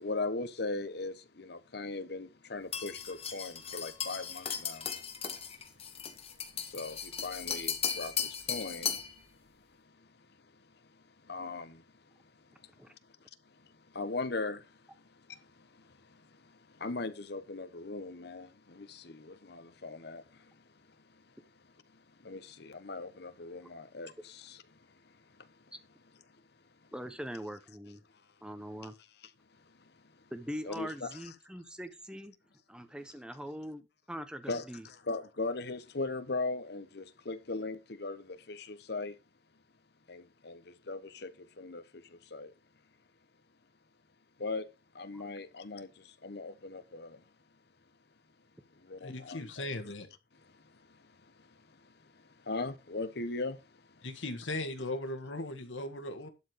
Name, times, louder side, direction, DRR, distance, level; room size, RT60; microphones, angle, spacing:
voice 1, 0.0-5.1 6.3-9.5 10.0-10.1 10.9-11.8 12.6-12.9 13.5-20.6 21.1-21.2 21.9-24.8 25.0-25.6 29.8-30.2 30.6-31.3 34.5-39.1 40.1-42.5 44.4-47.2 48.8-49.7 50.4-54.1, left 3 dB, 60° left, 1.0 m, -40 dB
sound 1, 2.7-9.1, left 7 dB, 30° left, 1.6 m, -37 dB
voice 2, 26.9-28.0 28.4-29.0 30.3-32.3 32.7-34.9 45.1-45.2, equal, 5° right, 1.1 m, -42 dB
voice 3, 49.0-50.1 54.0-56.3, left 2 dB, 90° left, 1.8 m, -38 dB
11.5 x 4.7 x 5.0 m
head